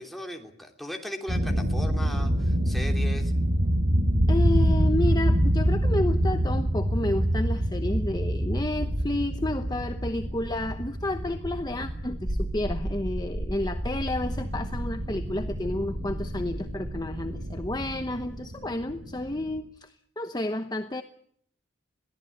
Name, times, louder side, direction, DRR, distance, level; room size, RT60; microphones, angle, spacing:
voice 1, 0.0-3.3, equal, ahead, 2 dB, 3.1 m, -38 dB
sound 1, 1.3-19.6, equal, 70° right, 5.1 m, -27 dB
voice 2, 4.3-21.0, left 1 dB, 20° left, 8 dB, 0.9 m, -31 dB
22.5 x 16.0 x 9.9 m, 0.64 s
head